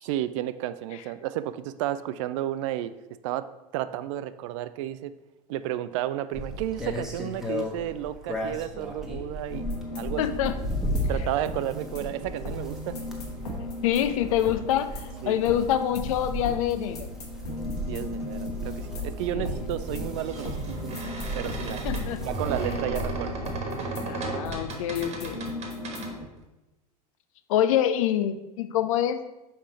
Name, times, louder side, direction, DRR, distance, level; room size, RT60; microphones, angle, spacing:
voice 1, 0.0-2.9 3.2-3.5 3.7-5.1 5.5-10.3 11.1-13.0 15.2-15.4 17.9-21.0 21.4-21.9 22.2-23.4, right 13 dB, 50° right, 13 dB, 0.4 m, -32 dB
sound 1, 6.3-23.6, left 1 dB, ahead, 1.2 m, -35 dB
sound 2, 9.5-26.3, left 1 dB, 75° left, 1.4 m, -38 dB
voice 2, 10.2-10.5 13.8-17.1 19.3-19.5 21.8-22.2 24.0-25.5 27.5-29.2, left 11 dB, 60° left, 11 dB, 0.5 m, -26 dB
sound 3, 18.3-18.4 20.0-26.1, right 3 dB, 35° right, 1.4 m, -35 dB
5.7 x 4.8 x 4.2 m, 0.99 s
figure-of-eight pair, 80°, 20 cm